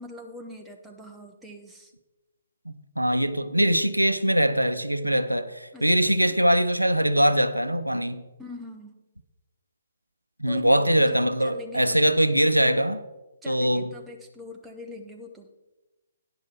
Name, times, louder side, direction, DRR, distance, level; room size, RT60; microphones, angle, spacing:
voice 1, 0.0-1.9 5.7-6.4 8.4-9.0 10.4-10.8 11.1-12.1 13.4-15.5, left 1 dB, 5° right, 1.1 m, -43 dB
voice 2, 2.7-8.2 10.4-13.0 13.5-13.8, equal, 90° right, 0.6 m, -22 dB
9.8 x 5.2 x 6.8 m
figure-of-eight pair, 130°, 0 cm